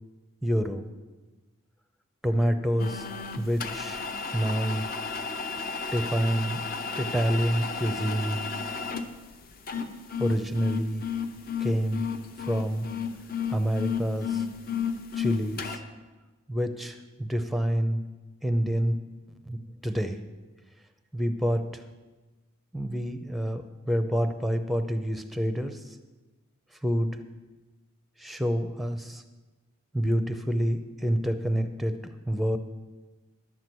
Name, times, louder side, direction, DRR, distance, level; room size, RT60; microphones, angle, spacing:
voice 1, 0.4-0.8 2.2-4.1 4.3-4.9 5.9-6.6 6.9-8.4 10.2-11.0 11.6-12.1 12.4-12.9 13.5-14.4 15.1-15.7 16.5-18.0 18.4-19.0 19.5-20.2 21.1-21.8 22.7-26.0 26.8-27.1 28.2-29.2 29.9-32.6, equal, ahead, 8 dB, 0.6 m, -27 dB
sound 1, 2.8-15.8, left 6 dB, 40° left, 0.7 m, -33 dB
11.0 x 8.1 x 6.1 m, 1.2 s
head